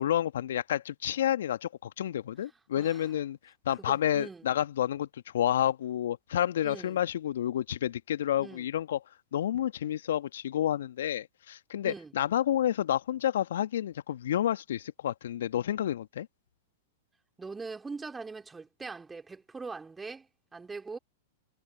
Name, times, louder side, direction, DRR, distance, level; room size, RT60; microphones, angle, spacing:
voice 1, 0.0-3.4 3.7-5.1 5.3-9.0 9.3-16.3, left 11 dB, 65° left, 1.6 m, -29 dB
voice 2, 2.8-3.1 3.8-4.5 6.6-7.0 8.4-8.7 11.8-12.1 17.4-21.0, right 4 dB, 10° right, 4.3 m, -42 dB
figure-of-eight pair, 100°, 0 cm